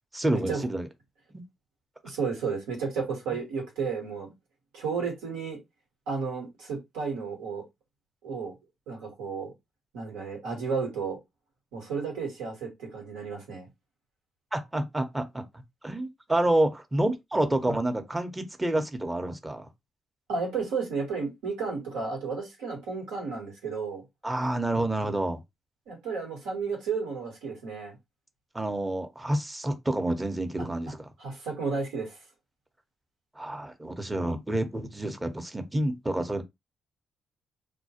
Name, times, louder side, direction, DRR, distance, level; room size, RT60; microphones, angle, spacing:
voice 1, 0.1-0.9 1.3-1.4 14.5-15.4 15.8-19.7 24.2-25.4 28.5-31.1 33.4-36.4, right 1 dB, 20° right, 0.7 m, -28 dB
voice 2, 2.0-4.3 4.7-5.6 6.1-7.6 8.2-8.5 8.9-9.5 9.9-11.2 11.7-13.7 17.6-17.7 20.3-24.0 25.9-28.0 31.2-32.2, right 5 dB, 85° right, 1.1 m, -32 dB
2.2 x 2.1 x 2.8 m
supercardioid pair, 50°, 0 cm